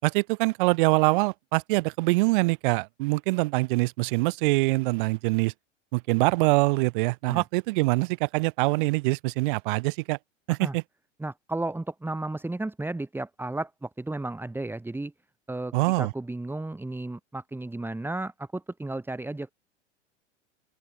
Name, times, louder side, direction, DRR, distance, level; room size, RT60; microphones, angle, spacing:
voice 1, 0.0-5.5 5.9-10.2 10.5-10.8 15.7-16.1, right 24 dB, 45° right, 1.1 m, -24 dB
voice 2, 11.2-15.1 15.5-19.5, right 2 dB, 5° right, 4.2 m, -33 dB
open air
figure-of-eight pair, 90°, 36 cm